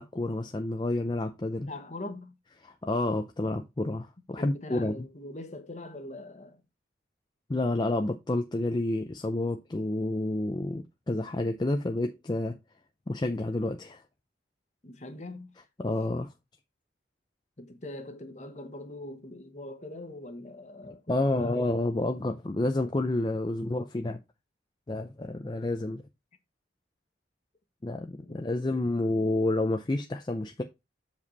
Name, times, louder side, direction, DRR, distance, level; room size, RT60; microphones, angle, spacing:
voice 1, 0.0-1.7 2.6-5.1 7.5-12.6 13.1-14.0 15.8-16.3 21.1-24.2 24.9-26.0 27.8-30.6, left 2 dB, 25° left, 0.4 m, -29 dB
voice 2, 1.6-2.3 4.4-6.6 14.8-15.5 17.6-21.0 21.3-21.6 28.2-28.6, left 2 dB, 40° left, 1.1 m, -42 dB
7.1 x 5.0 x 4.0 m
head